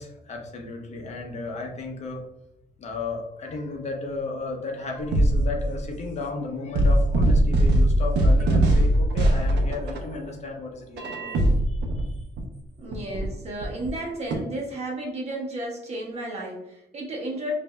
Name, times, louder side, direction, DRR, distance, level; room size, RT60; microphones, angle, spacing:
voice 1, 0.0-2.2 2.8-12.2, left 3 dB, 40° left, 1 dB, 0.8 m, -34 dB
sound 1, 5.1-5.8 6.7-10.2 11.0-12.4 12.9-13.3 13.6-13.9 14.3-14.4, right 1 dB, 75° right, 0.7 m, -21 dB
voice 2, 12.8-17.5, right 1 dB, 35° right, -1 dB, 1.0 m, -33 dB
5.2 x 2.6 x 2.2 m, 0.84 s
cardioid pair, 165°, 18 cm